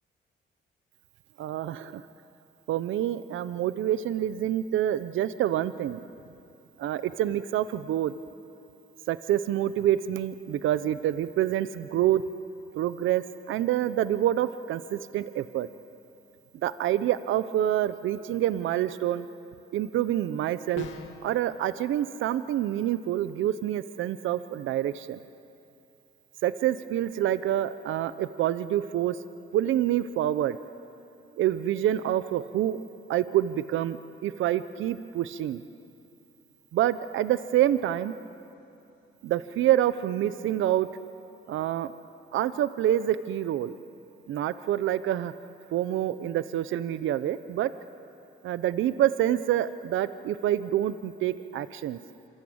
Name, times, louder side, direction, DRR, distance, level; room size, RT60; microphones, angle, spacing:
voice 1, 1.4-2.0 2.7-6.0 6.8-8.1 9.1-12.2 12.7-15.7 16.6-19.3 19.7-20.9 21.2-25.2 26.4-29.2 29.5-30.6 31.4-32.8 33.1-35.6 36.7-38.1 39.2-40.9 41.5-41.9 42.3-43.7 44.3-45.3 45.7-47.7 48.4-52.0, right 12 dB, 80° right, 14 dB, 0.8 m, -27 dB
sound 1, 20.8-21.3, left 7 dB, 75° left, 2.4 m, -40 dB
26.0 x 25.5 x 8.8 m, 2.6 s
cardioid pair, 90°, 20 cm